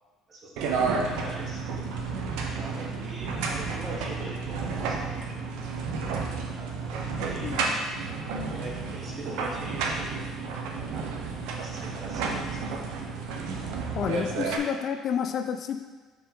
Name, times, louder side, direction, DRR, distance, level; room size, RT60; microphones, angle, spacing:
voice 1, 0.3-1.7 2.3-5.5 6.6-7.6 8.3-11.1 11.6-12.7 14.1-14.3, right 1 dB, 40° right, 0 dB, 1.4 m, -43 dB
sound 1, 0.6-14.6, right 4 dB, 80° right, 0.8 m, -31 dB
voice 2, 13.9-15.8, left 7 dB, 55° left, 7 dB, 0.5 m, -29 dB
6.5 x 4.6 x 3.8 m, 1.3 s
supercardioid pair, 90°, 0 cm